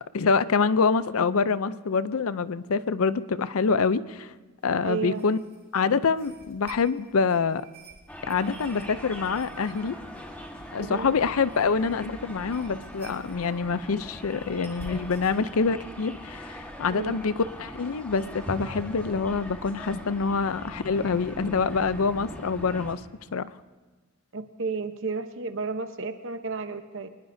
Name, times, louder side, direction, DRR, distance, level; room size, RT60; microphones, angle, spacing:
voice 1, 0.1-4.3 4.6-5.4 5.7-7.6 8.3-10.0 10.7-23.0 23.3-23.5, left 5 dB, 75° left, 15 dB, 0.5 m, -26 dB
sound 1, 4.6-15.4, right 2 dB, 25° right, 2.5 m, -51 dB
voice 2, 4.8-5.2 10.8-11.1 16.9-17.2 24.3-27.1, right 4 dB, 60° right, 9 dB, 0.9 m, -32 dB
sound 2, 8.1-22.9, equal, 5° left, 1.5 m, -41 dB
24.0 x 20.0 x 2.7 m, 1.3 s
head